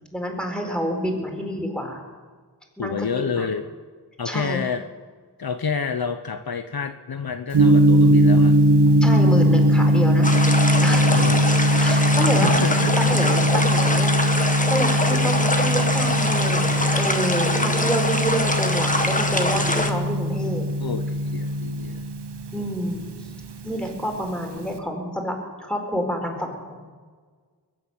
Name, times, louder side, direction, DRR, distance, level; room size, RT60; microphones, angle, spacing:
voice 1, 0.1-2.0 2.8-3.5 4.2-4.6 9.0-10.4 10.8-11.3 11.7-14.1 14.4-20.7 22.5-23.0 23.6-26.9, equal, ahead, 1 dB, 4.3 m, -28 dB
voice 2, 2.8-3.6 4.2-4.8 5.4-8.6 11.1-11.5 12.4-13.1 20.8-22.0, left 6 dB, 60° left, 8 dB, 0.9 m, -28 dB
Gong, 7.5-24.8, equal, 80° right, 1.1 m, -20 dB
sound 1, 10.2-19.9, left 1 dB, 20° left, 1.7 m, -24 dB
22.5 x 8.2 x 7.8 m, 1.6 s
cardioid pair, 50°, 40 cm